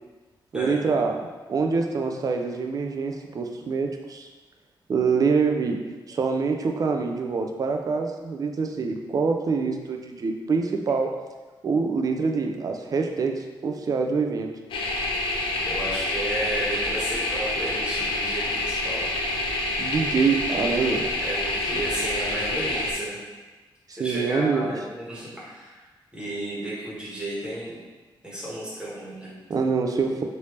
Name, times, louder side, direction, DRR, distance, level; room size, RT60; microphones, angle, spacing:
voice 1, 0.5-4.3 4.9-11.1 11.6-14.5 19.8-21.1 23.9-24.7 29.5-30.2, right 4 dB, 45° right, 3 dB, 0.4 m, -25 dB
sound 1, 14.7-22.9, left 2 dB, 80° left, 0.5 m, -27 dB
voice 2, 15.6-19.0 21.2-23.2 23.9-25.8 26.1-27.8 28.2-29.6, right 1 dB, 10° right, -8 dB, 1.3 m, -33 dB
3.3 x 2.6 x 3.1 m, 1.3 s
wide cardioid pair, 110°, 8 cm